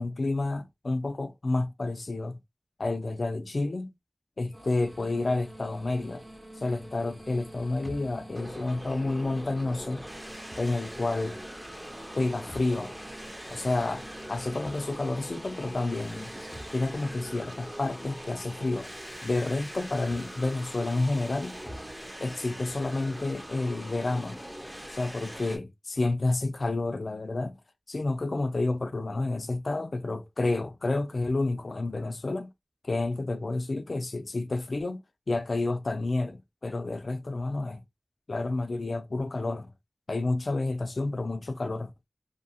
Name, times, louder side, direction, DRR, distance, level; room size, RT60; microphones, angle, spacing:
voice 1, 0.0-2.3 2.8-3.9 4.4-6.2 6.6-10.1 10.6-11.4 12.1-12.9 13.5-14.0 14.3-16.3 16.7-18.9 19.2-21.6 22.2-24.4 24.9-27.6 27.9-32.5 32.8-37.8 38.3-39.7 40.1-41.9, left 2 dB, 85° left, 0.4 m, -30 dB
sound 1, 4.5-17.3, right 1 dB, 50° right, 1.2 m, -49 dB
sound 2, 7.8-22.1, equal, ahead, 0.5 m, -52 dB
sound 3, 8.3-25.6, equal, 25° right, 0.9 m, -42 dB
2.7 x 2.1 x 2.7 m
wide cardioid pair, 45°, 0 cm